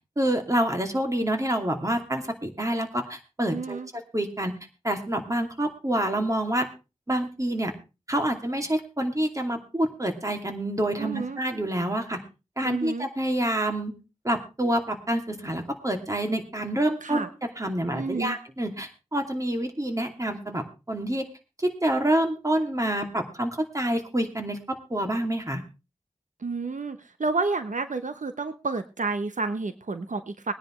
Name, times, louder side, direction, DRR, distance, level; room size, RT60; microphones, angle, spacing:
voice 1, 0.2-3.8 4.1-4.5 4.8-6.7 7.1-7.7 8.1-12.2 12.6-13.9 14.2-17.3 17.6-21.2 21.6-24.6 24.9-25.6, right 1 dB, 25° right, 4 dB, 2.7 m, -27 dB
voice 2, 3.5-3.9 11.0-11.4 12.6-13.1 17.0-17.3 17.9-18.4 26.4-30.5, right 3 dB, 80° right, 9 dB, 0.9 m, -30 dB
20.5 x 10.0 x 3.2 m, 0.29 s
wide cardioid pair, 55°, 13 cm